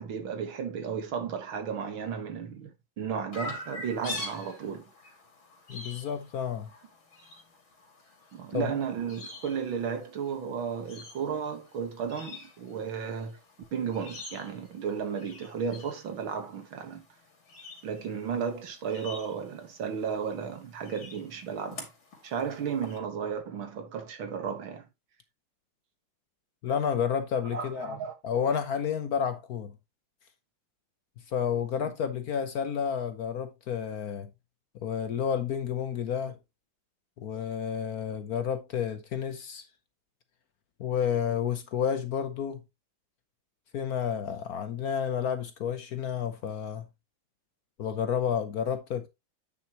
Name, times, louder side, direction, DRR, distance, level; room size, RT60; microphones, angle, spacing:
voice 1, 0.0-4.9 8.3-13.4 13.7-17.1 17.8-21.9 22.2-24.9 27.5-28.1 31.8-31.9, right 7 dB, 80° right, 2.3 m, -34 dB
Chirp tweet, 3.3-23.0, left 3 dB, 85° left, 3.5 m, -46 dB
voice 2, 5.7-6.7 8.5-8.7 26.6-28.0 28.2-29.7 31.3-34.3 34.7-36.4 37.2-39.6 40.8-42.6 43.7-46.9 47.8-49.1, left 7 dB, 60° left, 1.1 m, -30 dB
9.5 x 5.9 x 3.0 m
omnidirectional pair, 2.2 m